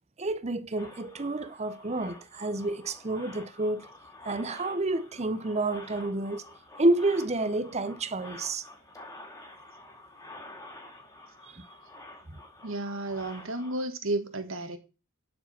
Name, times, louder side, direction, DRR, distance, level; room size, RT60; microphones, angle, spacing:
voice 1, 0.2-3.9 4.2-6.4 6.8-8.7 11.5-11.6, right 2 dB, 30° right, 0.7 m, -29 dB
sound 1, 0.8-13.8, left 2 dB, 15° left, 2.3 m, -49 dB
voice 2, 12.6-14.8, right 2 dB, 70° right, 1.8 m, -32 dB
11.5 x 4.9 x 5.7 m
head